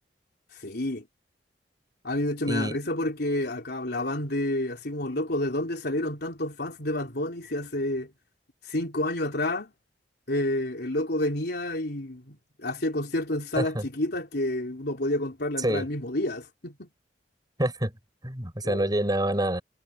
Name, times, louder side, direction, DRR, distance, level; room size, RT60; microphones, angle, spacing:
voice 1, 0.6-1.1 2.0-8.1 8.7-9.7 10.3-12.4 12.6-16.9 18.6-18.9, left 1 dB, 65° left, 4.1 m, -29 dB
voice 2, 2.4-2.8 13.5-13.8 15.6-15.9 17.6-17.9 18.2-19.6, right 1 dB, 25° right, 6.5 m, -27 dB
head